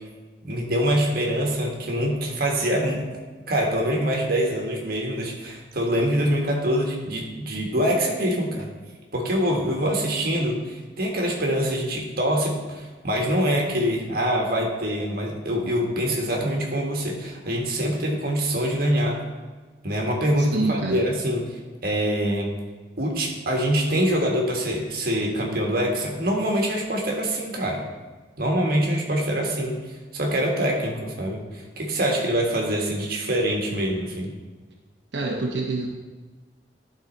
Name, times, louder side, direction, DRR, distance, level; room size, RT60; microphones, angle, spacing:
voice 1, 0.4-3.0 3.5-8.7 9.1-19.2 19.8-22.5 23.0-27.8 28.4-29.8 30.1-34.3, equal, 55° right, 0 dB, 1.5 m, -24 dB
voice 2, 20.4-21.0 35.1-35.9, right 2 dB, 90° right, -1 dB, 1.0 m, -26 dB
12.0 x 4.0 x 4.1 m, 1.3 s
head